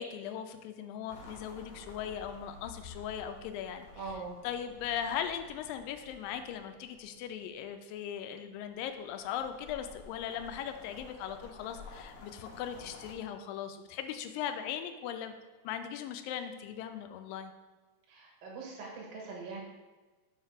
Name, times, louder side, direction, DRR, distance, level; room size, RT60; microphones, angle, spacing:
voice 1, 0.0-3.9 4.4-15.4 15.6-17.5, left 9 dB, 85° left, 7 dB, 2.3 m, -39 dB
sound 1, 1.1-7.6 8.7-13.1, left 3 dB, 65° left, 1.6 m, -52 dB
voice 2, 4.0-4.4 18.1-19.6, right 4 dB, 85° right, -2 dB, 3.0 m, -42 dB
5.8 x 5.2 x 5.7 m, 1.3 s
omnidirectional pair, 4.0 m